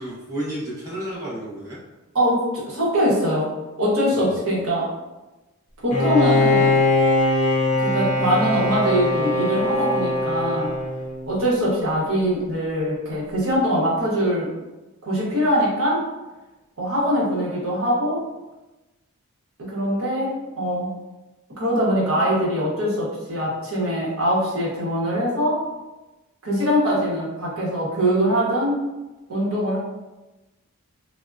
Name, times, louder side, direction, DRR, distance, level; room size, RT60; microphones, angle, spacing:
voice 1, 0.0-1.8 4.1-4.4, right 1 dB, 15° right, -9 dB, 0.7 m, -32 dB
voice 2, 2.1-3.5 3.8-4.9 5.8-6.7 7.8-10.7 11.3-14.5 15.0-16.0 16.8-18.2 19.6-20.9 21.6-25.6 26.4-28.8 29.3-29.8, equal, 65° right, -6 dB, 0.9 m, -22 dB
Bowed string instrument, 5.9-11.5, left 2 dB, 35° left, 0.4 m, -21 dB
3.4 x 2.1 x 2.4 m, 1.1 s
head